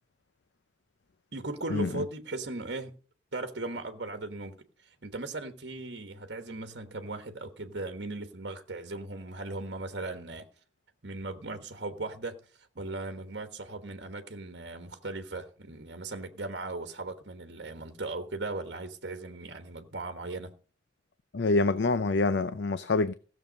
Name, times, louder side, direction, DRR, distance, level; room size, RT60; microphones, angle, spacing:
voice 1, 1.3-3.0 3.3-10.5 11.0-20.5, right 2 dB, 65° right, 1.3 m, -38 dB
voice 2, 21.3-23.1, left 3 dB, 70° left, 0.6 m, -26 dB
16.0 x 7.1 x 5.3 m
head